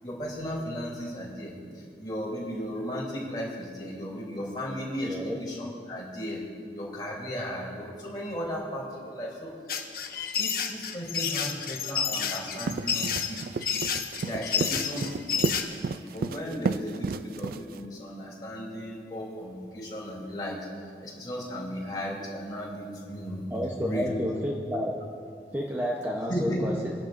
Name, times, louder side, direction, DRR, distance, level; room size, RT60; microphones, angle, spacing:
voice 1, 0.0-6.4 6.7-9.5 10.3-13.4 14.2-20.7 21.0-23.4 23.8-24.1 26.3-26.7, equal, 25° left, -4 dB, 3.1 m, -35 dB
voice 2, 5.1-5.4 23.5-25.1 25.5-27.0, equal, 10° right, -3 dB, 0.8 m, -31 dB
sound 1, 9.7-15.6, left 7 dB, 50° left, 1.0 m, -29 dB
sound 2, 12.4-17.9, right 4 dB, 50° right, 0.3 m, -32 dB
23.5 x 11.5 x 2.6 m, 2.3 s
head